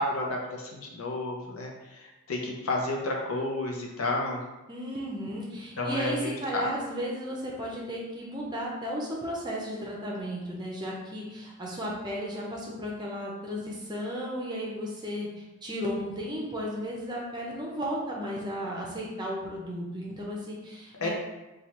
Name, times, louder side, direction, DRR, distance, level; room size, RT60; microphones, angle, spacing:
voice 1, 0.0-1.7 2.3-4.4 5.8-6.7 21.0-21.1, left 2 dB, 80° left, -1 dB, 0.6 m, -30 dB
voice 2, 4.7-21.1, equal, 20° right, -3 dB, 0.5 m, -34 dB
3.1 x 2.3 x 2.9 m, 1.0 s
head